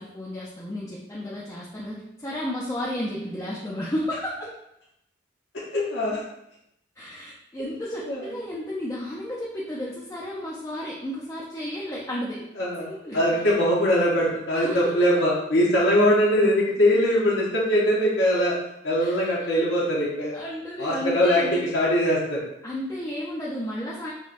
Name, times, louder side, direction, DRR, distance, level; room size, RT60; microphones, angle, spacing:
voice 1, 0.0-4.5 7.0-12.4 12.9-13.3 14.5-15.1 19.0-19.3 20.3-21.6 22.6-24.1, equal, 15° left, -5 dB, 0.4 m, -33 dB
voice 2, 5.7-6.2 8.1-8.3 12.6-12.8 13.1-18.5 18.8-20.3 20.8-22.4, equal, 75° left, -7 dB, 0.7 m, -21 dB
5.0 x 2.1 x 2.4 m, 0.81 s
head